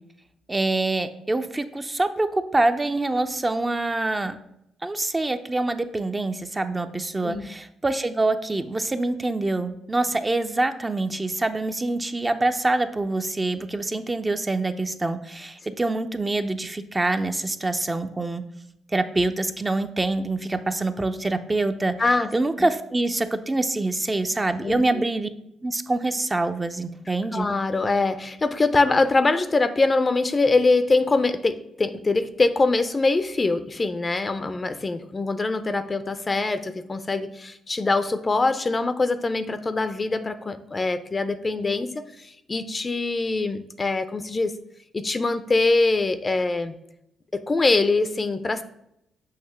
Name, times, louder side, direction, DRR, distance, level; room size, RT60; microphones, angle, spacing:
voice 1, 0.5-4.4 4.8-18.4 18.9-22.0 22.3-25.3 25.6-27.5, right 2 dB, 25° right, 8 dB, 0.5 m, -25 dB
voice 2, 22.0-22.3 22.6-22.7 24.6-25.0 27.3-44.6 44.9-46.7 47.3-48.6, left 3 dB, 35° left, 11 dB, 0.5 m, -23 dB
6.5 x 2.8 x 5.7 m, 0.78 s
hypercardioid pair, 50°, 0 cm